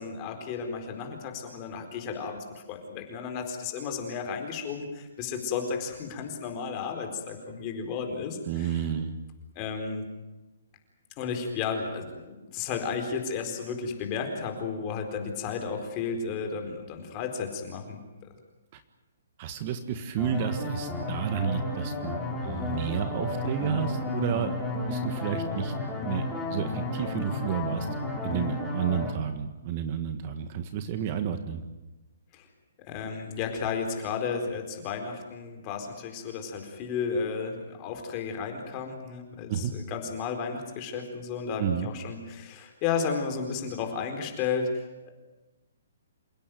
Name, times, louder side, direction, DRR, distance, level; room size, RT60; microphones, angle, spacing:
voice 1, 0.0-8.8 9.5-10.1 11.2-18.0 32.3-32.5 32.8-45.1, left 5 dB, 25° left, 4 dB, 4.4 m, -33 dB
voice 2, 8.5-9.2 18.7-18.8 19.4-24.5 24.9-25.7 26.0-26.2 26.5-27.9 28.2-31.6 39.5-39.7 41.6-41.9, right 8 dB, 30° right, 9 dB, 1.6 m, -31 dB
sound 1, 20.2-29.1, left 2 dB, ahead, 4.6 m, -32 dB
28.0 x 17.0 x 9.3 m, 1.1 s
hypercardioid pair, 170°, 0 cm